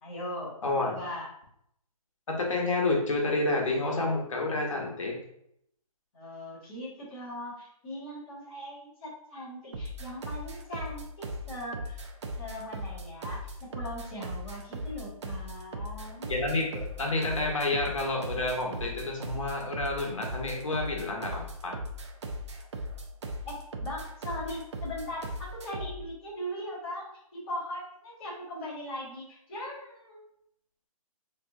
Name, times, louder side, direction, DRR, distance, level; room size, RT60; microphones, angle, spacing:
voice 1, 0.0-0.5 0.8-1.3 6.1-12.0 12.4-16.3 23.4-30.2, equal, 10° left, -12 dB, 0.5 m, -40 dB
voice 2, 0.6-1.0 2.3-5.2 16.3-21.8, left 2 dB, 55° left, 0 dB, 1.0 m, -29 dB
sound 1, 9.7-26.0, equal, 50° right, 0.4 m, -38 dB
3.4 x 2.8 x 2.6 m, 0.74 s
hypercardioid pair, 175°, 19 cm